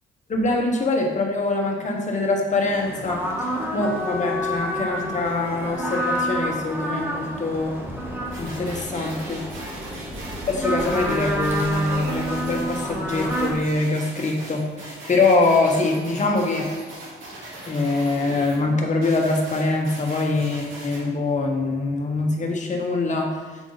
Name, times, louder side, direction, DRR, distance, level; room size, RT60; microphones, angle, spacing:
voice 1, 0.3-3.3 3.7-7.8 8.4-9.4 10.5-16.7 17.7-23.4, left 3 dB, 35° left, 0 dB, 1.3 m, -23 dB
sound 1, 2.7-13.5, equal, 10° right, 1.1 m, -29 dB
sound 2, 8.3-18.6 19.0-21.0, right 1 dB, 85° right, 2.1 m, -39 dB
8.3 x 3.6 x 4.0 m, 1.3 s
cardioid pair, 90°, 20 cm